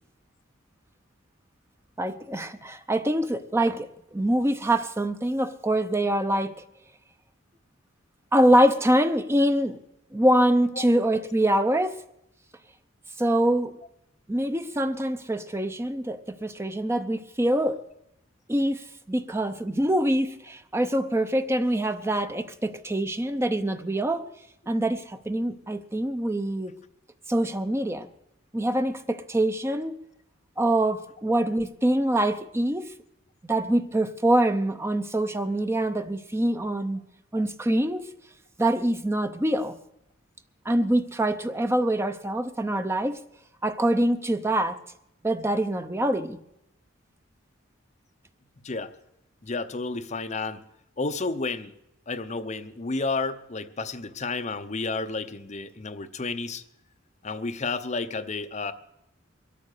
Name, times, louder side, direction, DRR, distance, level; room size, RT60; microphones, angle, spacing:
voice 1, 2.0-6.6 8.3-9.8 10.1-12.0 13.2-13.8 14.3-17.8 18.5-24.3 24.7-26.8 27.3-28.1 28.5-30.0 30.6-32.9 33.5-37.0 37.3-38.1 38.6-39.8 40.7-43.2 43.6-44.8 45.2-46.4, right 1 dB, 15° right, 0.6 m, -24 dB
voice 2, 49.4-50.6 51.0-51.7 52.1-56.6 57.2-58.7, left 3 dB, 35° left, 0.7 m, -31 dB
22.0 x 8.6 x 6.6 m
head